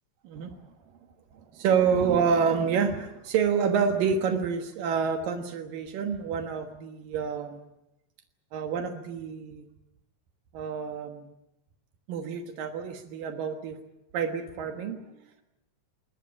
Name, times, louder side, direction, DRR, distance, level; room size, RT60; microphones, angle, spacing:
voice 1, 0.2-0.6 1.3-7.6 8.5-9.7 10.5-11.3 12.1-13.8 14.1-15.0, right 6 dB, 80° right, 7 dB, 3.1 m, -28 dB
21.5 x 20.5 x 8.7 m, 0.87 s
omnidirectional pair, 3.9 m